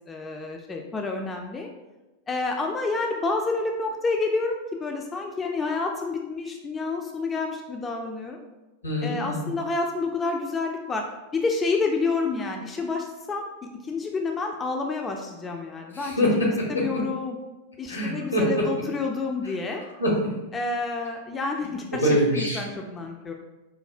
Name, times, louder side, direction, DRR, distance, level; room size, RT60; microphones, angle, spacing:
voice 1, 0.0-1.7 2.3-8.4 9.0-11.0 11.3-13.5 13.8-16.3 16.7-17.4 17.8-19.8 20.5-22.0 22.4-23.3, left 3 dB, 20° left, 2 dB, 0.3 m, -29 dB
voice 2, 8.8-9.6 15.9-17.0 17.9-18.7 19.4-19.5 20.0-20.3 21.9-22.6, equal, 80° left, -3 dB, 0.9 m, -24 dB
4.2 x 2.0 x 2.4 m, 1.0 s
figure-of-eight pair, 90°, 0 cm